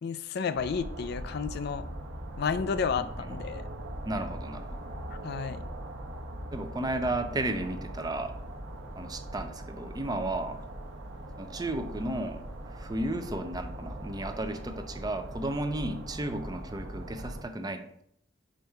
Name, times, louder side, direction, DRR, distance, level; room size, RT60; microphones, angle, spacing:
voice 1, 0.0-1.9 2.4-3.7 5.2-5.6, left 6 dB, 55° left, 12 dB, 0.3 m, -31 dB
sound 1, 0.5-17.4, right 1 dB, 85° right, 1.0 m, -41 dB
voice 2, 4.0-4.8 6.5-8.3 9.0-10.6 11.4-12.4 12.7-18.0, right 1 dB, 20° right, 8 dB, 0.5 m, -33 dB
5.3 x 5.1 x 4.5 m, 0.71 s
head